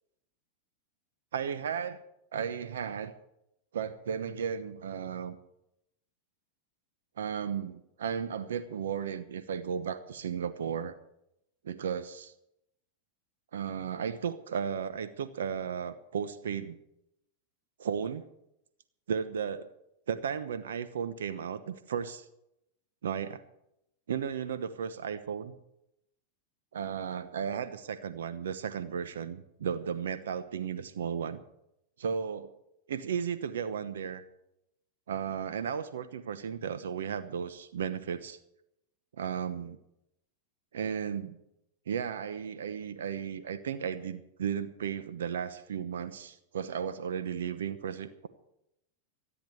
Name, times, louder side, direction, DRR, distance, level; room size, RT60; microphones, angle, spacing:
voice 1, 1.3-2.0 2.3-3.1 3.7-5.4 7.2-11.0 11.6-12.3 13.5-16.8 17.8-18.3 19.1-19.7 20.1-22.3 23.0-23.4 24.1-25.6 26.7-31.4 32.0-32.5 32.9-34.2 35.1-38.4 39.2-39.8 40.7-41.4 41.9-48.3, right 7 dB, 85° right, 12 dB, 1.0 m, -34 dB
14.0 x 10.0 x 7.9 m, 0.82 s
hypercardioid pair, 115°, 0 cm